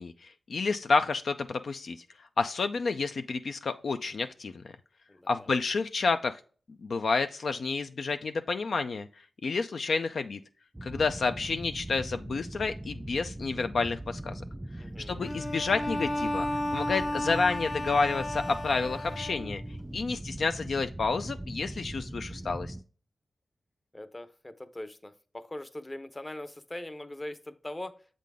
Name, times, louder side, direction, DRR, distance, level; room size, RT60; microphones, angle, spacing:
voice 1, 0.0-2.0 2.4-4.7 5.3-6.4 6.8-9.1 9.4-10.4 10.8-14.4 15.1-16.5 16.7-19.6 19.9-22.7, left 4 dB, 70° left, 8 dB, 0.4 m, -30 dB
voice 2, 5.1-5.6 14.8-15.2 23.9-28.0, left 1 dB, 25° left, 11 dB, 0.7 m, -41 dB
sound 1, 10.7-22.8, right 1 dB, 15° right, 0.4 m, -40 dB
Bowed string instrument, 15.2-19.8, left 1 dB, 55° left, 1.0 m, -33 dB
7.4 x 3.8 x 3.4 m, 0.39 s
cardioid pair, 65°, 0 cm